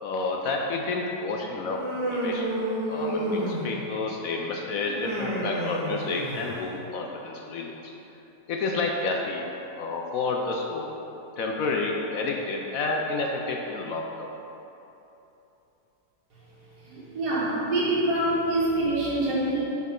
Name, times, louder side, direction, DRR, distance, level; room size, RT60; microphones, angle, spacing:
voice 1, 0.0-2.5 2.9-7.9 8.5-9.5 9.8-10.9 11.4-14.3, left 3 dB, 70° left, 1 dB, 0.8 m, -30 dB
Human voice, 1.7-4.0 4.8-6.7, right 1 dB, 15° right, 1.3 m, -30 dB
voice 2, 16.8-19.6, right 1 dB, 65° right, -7 dB, 2.0 m, -25 dB
9.3 x 4.2 x 3.7 m, 3.0 s
omnidirectional pair, 1.9 m